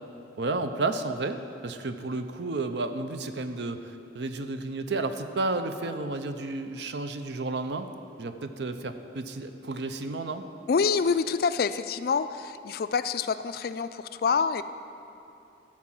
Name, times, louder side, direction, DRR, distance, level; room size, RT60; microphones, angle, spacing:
voice 1, 0.4-7.9 8.2-10.5, right 2 dB, 70° right, 8 dB, 0.6 m, -32 dB
voice 2, 10.7-14.6, left 5 dB, 55° left, 12 dB, 0.3 m, -26 dB
13.5 x 4.8 x 7.5 m, 2.8 s
head